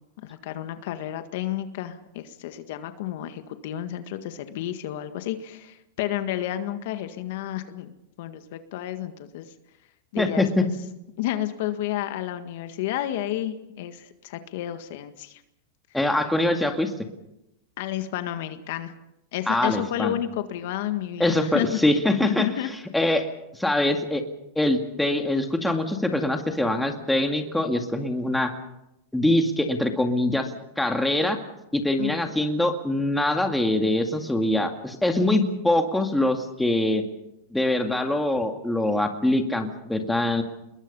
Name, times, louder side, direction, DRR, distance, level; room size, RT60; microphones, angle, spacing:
voice 1, 0.2-9.5 10.1-10.7 11.2-15.4 17.8-18.9 19.3-21.8 22.2-22.7 32.0-32.3, left 12 dB, 60° left, 9 dB, 1.7 m, -31 dB
voice 2, 10.2-10.6 15.9-16.9 19.5-20.1 21.2-22.5 22.9-23.3 23.5-24.3 24.6-28.5 29.1-30.5 30.8-31.4 31.7-37.1 37.5-40.4, left 1 dB, 5° left, 4 dB, 2.2 m, -23 dB
27.0 x 21.5 x 5.5 m, 0.87 s
supercardioid pair, 135°, 0 cm